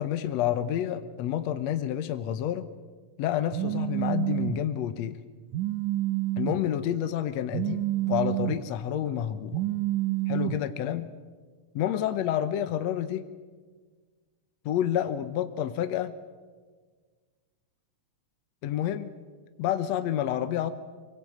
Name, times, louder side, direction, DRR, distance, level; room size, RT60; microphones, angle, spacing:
voice 1, 0.0-2.7 3.2-5.2 6.4-9.6 10.3-11.1 11.8-13.2 14.7-16.1 18.6-19.1 19.6-20.7, left 10 dB, 70° left, 11 dB, 2.0 m, -29 dB
Telephone, 3.5-4.6 5.5-6.6 7.5-8.6 9.5-10.6, right 16 dB, 80° right, 2.4 m, -28 dB
24.0 x 24.0 x 7.9 m, 1.5 s
omnidirectional pair, 3.4 m